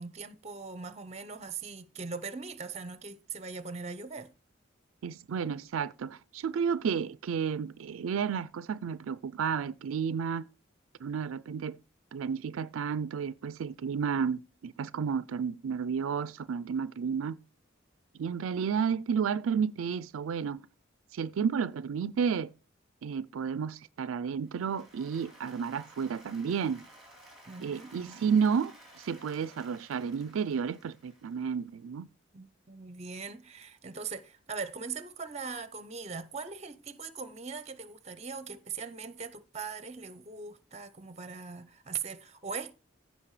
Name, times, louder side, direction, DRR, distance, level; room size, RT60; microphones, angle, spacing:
voice 1, 0.0-4.3 27.5-27.9 32.3-42.7, right 5 dB, 30° right, 0.7 m, -40 dB
voice 2, 5.0-10.5 11.0-11.8 12.1-17.4 18.1-20.6 21.1-22.5 23.0-26.8 27.6-32.1, right 6 dB, 80° right, 0.4 m, -32 dB
Applause, 24.5-31.7, right 1 dB, ahead, 3.5 m, -55 dB
15.5 x 5.4 x 3.2 m
head